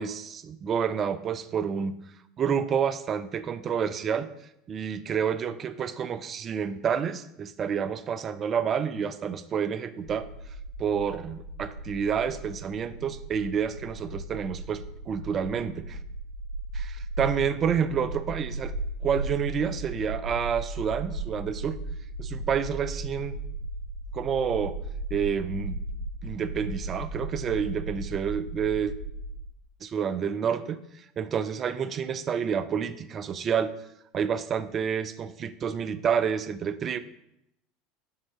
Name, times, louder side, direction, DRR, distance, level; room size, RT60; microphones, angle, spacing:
voice 1, 0.0-1.9 2.4-4.3 4.7-10.3 10.8-16.0 16.7-18.7 19.0-21.8 22.2-23.3 24.1-24.8 25.1-25.8 26.2-28.9 29.8-33.7 34.1-37.0, right 7 dB, 35° right, 13 dB, 0.4 m, -29 dB
sound 1, 10.0-29.5, right 2 dB, 85° right, 1.4 m, -36 dB
5.6 x 3.8 x 4.6 m, 0.80 s
figure-of-eight pair, 75°, 0 cm